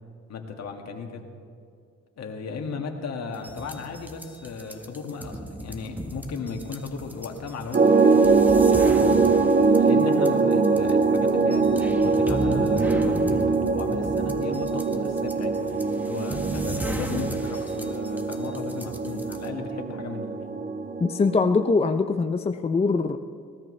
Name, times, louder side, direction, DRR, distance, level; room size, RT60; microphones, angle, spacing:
voice 1, 0.3-1.2 2.2-8.4 9.8-20.6, left 4 dB, 60° left, 3 dB, 2.0 m, -35 dB
sound 1, 3.3-19.5, equal, 5° right, 1.3 m, -35 dB
sound 2, 7.7-21.7, right 4 dB, 30° right, 1.0 m, -22 dB
voice 2, 21.0-23.2, left 4 dB, 20° left, 8 dB, 0.5 m, -22 dB
19.5 x 18.5 x 3.3 m, 2.4 s
cardioid pair, 90°, 30 cm